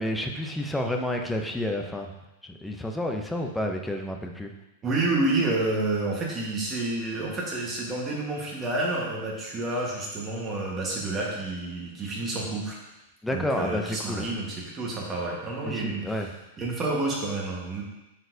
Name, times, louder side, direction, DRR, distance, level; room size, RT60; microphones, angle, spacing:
voice 1, 0.0-2.1 2.4-4.5 13.2-14.3 15.6-16.3, left 1 dB, 5° left, 3 dB, 0.5 m, -30 dB
voice 2, 4.8-12.8 13.3-17.8, right 2 dB, 20° right, -3 dB, 1.3 m, -29 dB
9.1 x 4.1 x 2.7 m, 0.96 s
supercardioid pair, 160°, 0 cm